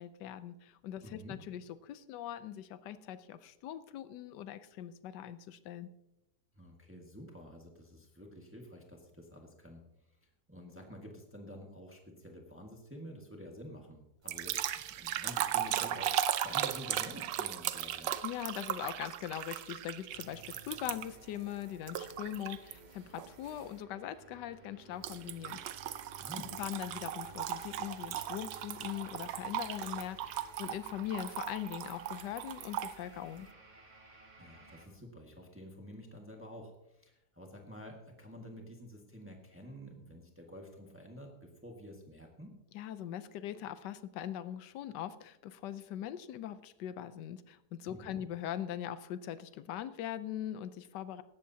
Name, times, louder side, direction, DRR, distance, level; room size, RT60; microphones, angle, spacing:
voice 1, 0.0-5.9 18.2-25.6 26.6-33.5 42.7-51.2, left 11 dB, 85° left, 13 dB, 1.3 m, -41 dB
voice 2, 1.0-1.4 6.5-9.8 10.5-18.1 26.2-26.5 34.4-42.5 47.9-48.2, equal, 10° right, 1 dB, 1.5 m, -49 dB
sound 1, 14.3-21.2 21.9-22.7 23.2-23.5 25.0-33.0, right 11 dB, 90° right, 1.3 m, -37 dB
sound 2, 20.1-34.9, right 2 dB, 35° right, 2.3 m, -57 dB
17.0 x 13.5 x 2.8 m, 0.90 s
omnidirectional pair, 1.8 m